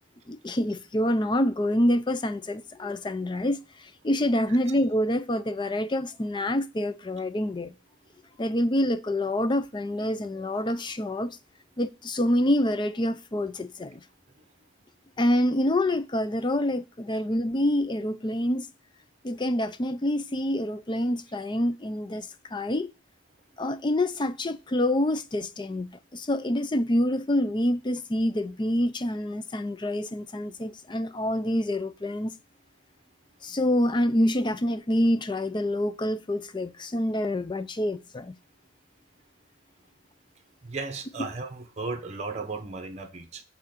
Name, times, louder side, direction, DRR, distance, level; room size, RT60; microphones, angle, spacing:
voice 1, 0.3-7.7 8.4-11.4 11.8-14.0 15.2-18.7 19.2-22.9 23.6-32.3 33.4-38.3 41.2-41.3, left 1 dB, 25° left, 0.5 m, -27 dB
voice 2, 40.6-43.4, right 3 dB, 35° right, 1.0 m, -35 dB
8.3 x 3.7 x 6.5 m
head